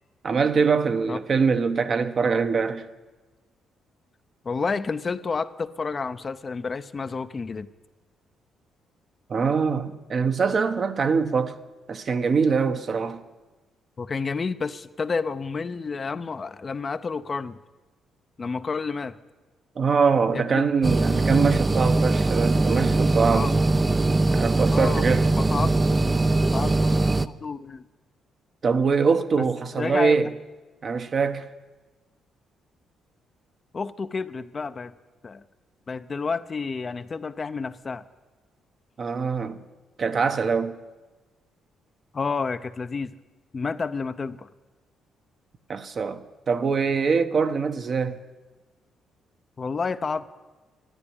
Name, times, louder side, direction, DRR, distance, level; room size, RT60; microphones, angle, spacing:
voice 1, 0.2-2.9 9.3-11.6 11.9-13.2 19.8-23.6 24.4-25.3 28.6-30.3 30.8-31.5 39.0-39.6 40.0-40.8 45.7-48.2, right 5 dB, 45° right, 0.9 m, -23 dB
voice 2, 4.4-7.7 14.0-17.6 18.4-19.2 20.3-20.6 23.3-23.5 24.7-25.0 25.4-26.1 26.5-26.9 27.4-27.8 29.8-30.2 33.7-34.9 35.2-35.4 35.9-38.0 42.1-43.1 43.5-44.5 49.6-50.3, left 4 dB, 35° left, 0.6 m, -30 dB
sound 1, 20.8-27.3, right 2 dB, 20° right, 0.5 m, -21 dB
12.5 x 9.9 x 10.0 m
cardioid pair, 90°, 0 cm